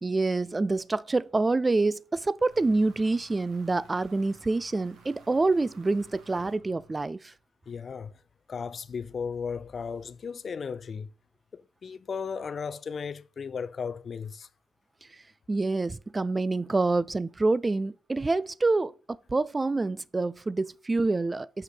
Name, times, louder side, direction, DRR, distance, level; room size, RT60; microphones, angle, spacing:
voice 1, 0.0-7.3 15.1-15.2 15.5-21.6, right 3 dB, 20° right, 0.3 m, -27 dB
sound 1, 2.5-7.4, right 4 dB, 80° right, 2.8 m, -56 dB
voice 2, 7.7-8.2 8.5-11.1 11.5-14.5, left 6 dB, 45° left, 0.4 m, -35 dB
6.1 x 5.6 x 5.8 m
cardioid pair, 90°, 0 cm